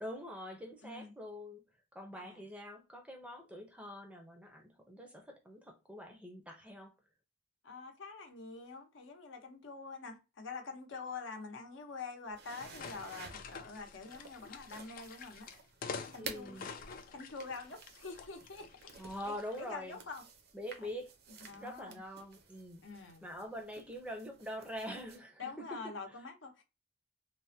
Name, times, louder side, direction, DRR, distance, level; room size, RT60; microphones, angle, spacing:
voice 1, 0.0-1.6 1.9-6.9 16.2-16.7 19.0-20.0 20.5-21.1 21.4-25.9, equal, 5° right, 0.5 m, -45 dB
voice 2, 7.6-15.5 16.1-16.6 17.1-18.9 19.2-20.3 21.4-22.0 22.8-23.2 25.4-26.6, left 4 dB, 70° left, 0.8 m, -46 dB
sound 1, 12.3-25.2, right 4 dB, 55° right, 0.6 m, -53 dB
sound 2, 12.6-19.6, left 5 dB, 45° left, 0.4 m, -48 dB
3.3 x 2.1 x 2.6 m
head